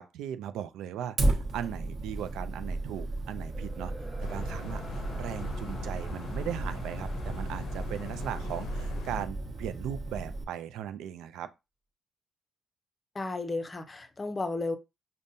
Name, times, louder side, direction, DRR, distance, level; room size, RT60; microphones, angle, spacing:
voice 1, 0.0-3.9 4.2-11.5, right 10 dB, 90° right, 0.3 m, -38 dB
Fire, 1.2-10.4, right 2 dB, 45° right, 1.0 m, -34 dB
sound 1, 2.3-9.6, equal, 5° left, 1.0 m, -49 dB
sound 2, 4.2-9.2, left 3 dB, 80° left, 0.6 m, -41 dB
voice 2, 13.1-14.8, left 3 dB, 25° left, 0.5 m, -33 dB
5.2 x 2.1 x 2.6 m
cardioid pair, 90°, 0 cm